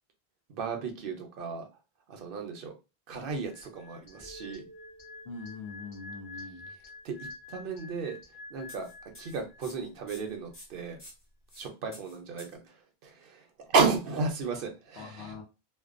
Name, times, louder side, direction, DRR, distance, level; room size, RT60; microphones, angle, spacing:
voice 1, 0.5-1.7 2.1-2.7 3.1-4.7 7.0-8.2 8.5-8.9 9.2-11.0 11.6-15.3, right 4 dB, 65° right, 0.8 m, -33 dB
sound 1, 3.4-9.8 10.1-10.4, left 3 dB, 30° right, 0.6 m, -48 dB
sound 2, 3.6-3.7 4.1-4.2 4.5-4.6 5.0-5.1 5.4-5.5 5.9-6.0 6.4-6.5 6.8-6.9 7.3-7.4 7.8-7.9 8.2-8.3 8.7-11.7 11.9-12.6, left 1 dB, 25° left, 1.2 m, -51 dB
sound 3, 4.2-7.7, right 2 dB, 40° left, 1.0 m, -54 dB
voice 2, 5.2-6.7 15.0-15.4, left 4 dB, 75° left, 0.9 m, -42 dB
2.6 x 2.1 x 2.4 m
omnidirectional pair, 1.1 m